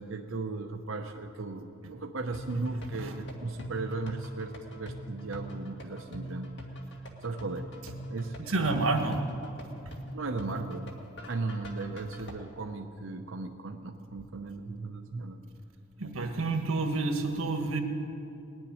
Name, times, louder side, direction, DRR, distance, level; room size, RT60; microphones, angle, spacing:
voice 1, 0.0-6.5 7.2-7.7 8.1-8.9 10.1-10.9 11.3-15.4, right 3 dB, 65° right, 4 dB, 0.8 m, -36 dB
sound 1, 2.3-12.3, right 1 dB, 55° left, 1.9 m, -42 dB
voice 2, 8.5-9.2 9.8-9.9 16.0-17.8, right 3 dB, 85° right, 5 dB, 1.6 m, -29 dB
20.0 x 7.1 x 9.7 m, 2.7 s
head